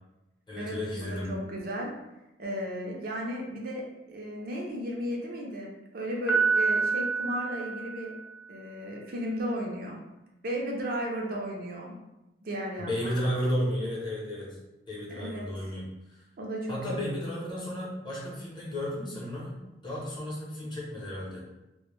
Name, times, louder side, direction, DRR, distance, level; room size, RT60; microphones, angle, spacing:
voice 1, 0.5-1.3 12.8-14.6 14.9-15.8 16.1-16.2 16.7-19.5 19.8-21.4, equal, 25° left, -5 dB, 0.6 m, -33 dB
voice 2, 1.1-1.9 2.4-8.1 8.5-10.0 10.4-11.9 12.4-13.1 15.1-15.5 16.4-17.1, equal, 55° right, -1 dB, 0.4 m, -35 dB
Piano, 6.3-8.4, right 4 dB, 75° left, 0.4 m, -27 dB
2.1 x 2.0 x 2.9 m, 0.96 s
head